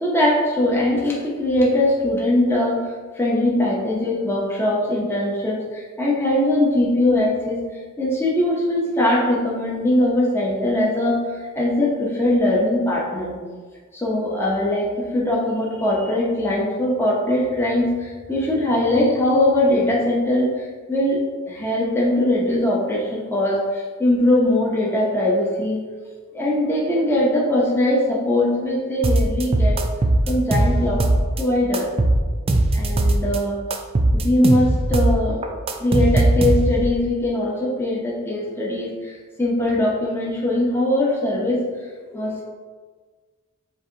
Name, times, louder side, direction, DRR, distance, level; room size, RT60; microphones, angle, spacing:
voice 1, 0.0-2.8 3.2-7.6 8.0-11.2 11.5-13.4 13.9-20.5 20.9-21.2 21.5-25.8 26.3-29.8 30.3-31.1 31.4-31.9 32.7-33.6 34.2-35.4 35.8-41.6 42.1-42.4, left 1 dB, 10° left, -5 dB, 0.7 m, -21 dB
sound 1, 29.0-31.4 31.7-33.4 33.7-36.9, right 1 dB, 25° right, 0.3 m, -19 dB
7.5 x 2.6 x 2.7 m, 1.5 s
head